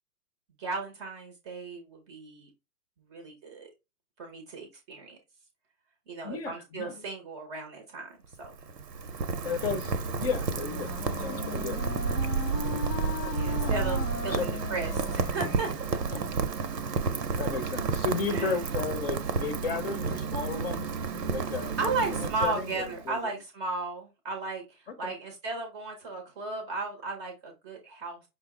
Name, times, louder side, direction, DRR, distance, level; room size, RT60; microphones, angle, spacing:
voice 1, 0.6-2.5 3.1-3.7 4.2-5.2 6.1-8.5 13.3-15.7 16.1-16.2 18.3-18.6 21.8-28.2, right 3 dB, 20° right, 0.6 m, -35 dB
voice 2, 6.2-7.0 9.4-11.8 13.6-13.9 14.3-14.5 16.1-16.2 16.7-16.8 17.4-20.9 21.3-23.3 25.0-25.1, left 5 dB, 40° left, 0.7 m, -34 dB
Rain, 8.2-23.1, right 5 dB, 90° right, 0.7 m, -31 dB
Wind instrument woodwind instrument, 10.2-16.4, left 10 dB, 80° left, 0.6 m, -39 dB
5.4 x 2.0 x 3.6 m
hypercardioid pair, 125°, 47 cm